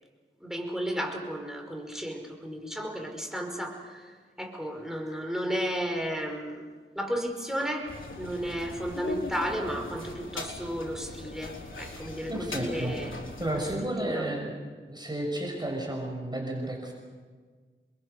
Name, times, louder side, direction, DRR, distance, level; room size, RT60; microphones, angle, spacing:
voice 1, 0.4-6.7 7.0-13.1 13.5-13.7 14.0-14.3, equal, ahead, 2 dB, 5.4 m, -33 dB
sound 1, 7.9-13.8, left 2 dB, 80° left, 3.9 m, -40 dB
voice 2, 12.3-12.9 13.4-14.5 14.9-16.9, right 1 dB, 20° right, 0 dB, 6.1 m, -32 dB
29.0 x 22.0 x 6.7 m, 1.5 s
wide cardioid pair, 55°, 20 cm